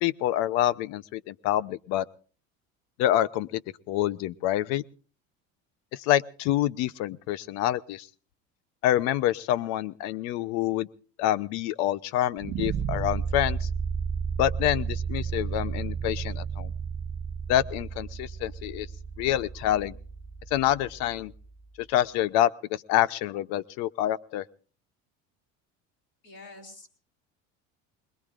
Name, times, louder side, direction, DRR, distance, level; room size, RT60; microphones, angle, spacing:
voice 1, 0.0-2.1 3.0-3.6 3.9-4.8 5.9-8.1 8.8-10.9 11.2-13.7 14.4-16.7 17.5-18.9 19.2-20.0 20.5-21.3 21.9-24.4, left 13 dB, 60° left, 18 dB, 0.7 m, -27 dB
sound 1, 12.4-21.4, right 6 dB, 30° right, 1.3 m, -33 dB
voice 2, 26.2-27.0, left 2 dB, 40° left, 2 dB, 4.1 m, -47 dB
25.5 x 21.0 x 2.5 m, 0.40 s
cardioid pair, 175°, 31 cm